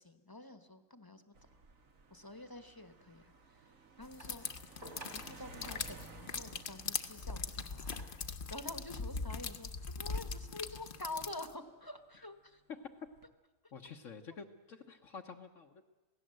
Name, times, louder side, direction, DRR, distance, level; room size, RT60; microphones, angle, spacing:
voice 1, 0.0-1.3 2.1-3.7 4.0-4.6 5.1-8.0 8.5-12.6, left 2 dB, 15° left, 9 dB, 1.1 m, -48 dB
sound 1, 1.3-12.1 12.8-13.3, right 4 dB, 80° right, 1.9 m, -58 dB
sound 2, 4.1-11.5, left 5 dB, 45° left, 1.0 m, -41 dB
sound 3, 4.2-5.6 7.1-8.4 9.2-9.3, right 2 dB, 60° right, 3.8 m, -54 dB
voice 2, 13.7-15.8, left 5 dB, 70° left, 2 dB, 1.4 m, -49 dB
27.5 x 17.0 x 7.7 m, 1.2 s
omnidirectional pair, 1.4 m